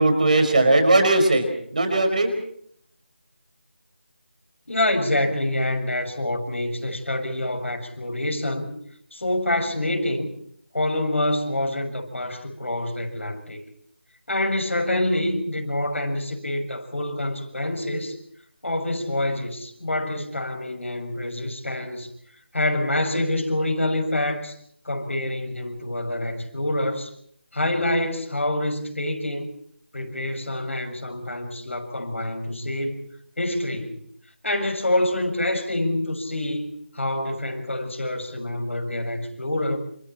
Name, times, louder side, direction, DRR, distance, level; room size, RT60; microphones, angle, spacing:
voice 1, 0.0-1.5 1.7-2.3, right 2 dB, 40° right, 7 dB, 4.9 m, -18 dB
voice 2, 4.7-8.8 9.1-10.3 10.7-13.6 14.3-18.2 18.6-22.1 22.5-24.5 24.9-27.1 27.5-29.5 29.9-33.1 33.4-34.0 34.4-36.7 37.0-39.8, left 1 dB, 90° left, 3 dB, 7.0 m, -26 dB
28.5 x 28.0 x 4.3 m, 0.64 s
figure-of-eight pair, 175°, 7 cm